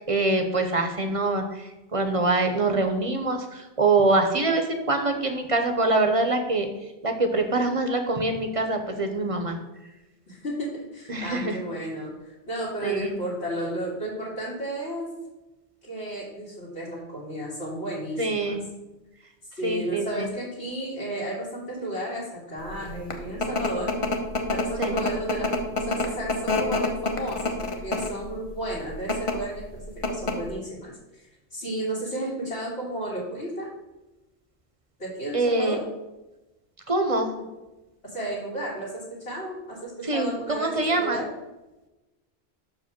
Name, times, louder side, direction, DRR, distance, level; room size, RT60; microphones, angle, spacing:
voice 1, 0.1-1.4 1.9-3.4 3.8-6.7 7.0-9.6 11.1-11.6 12.8-13.1 18.2-18.6 19.6-20.2 24.8-24.9 35.3-35.8 36.9-37.3 40.1-41.2, right 2 dB, 35° right, 6 dB, 0.7 m, -24 dB
voice 2, 10.3-15.1 15.8-18.6 19.6-23.9 24.5-33.7 35.0-35.8 37.4-37.5 38.0-41.3, right 1 dB, 75° left, -9 dB, 2.1 m, -33 dB
sound 1, 22.8-28.2 28.9-29.3 29.7-29.8 30.0-30.5, left 3 dB, 30° left, 0.8 m, -26 dB
6.2 x 5.1 x 5.9 m, 1.1 s
omnidirectional pair, 1.1 m